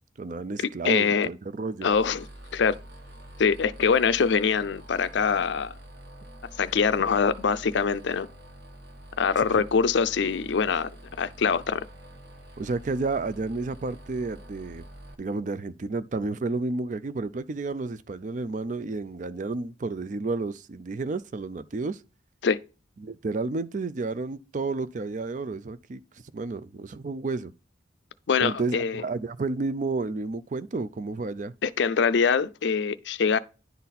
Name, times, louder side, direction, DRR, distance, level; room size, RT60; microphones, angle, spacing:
voice 1, 0.2-1.9 12.6-14.8 15.2-22.0 23.0-26.0 26.3-27.5 28.4-31.5, right 3 dB, 40° right, 0.4 m, -31 dB
voice 2, 0.8-1.3 1.8-2.2 2.5-2.8 3.4-5.7 6.6-8.3 9.2-11.9 22.4-22.6 28.3-29.0 31.6-33.4, left 6 dB, 70° left, 0.4 m, -24 dB
sound 1, 1.9-15.1, right 1 dB, 55° right, 1.5 m, -46 dB
10.5 x 4.1 x 4.1 m
head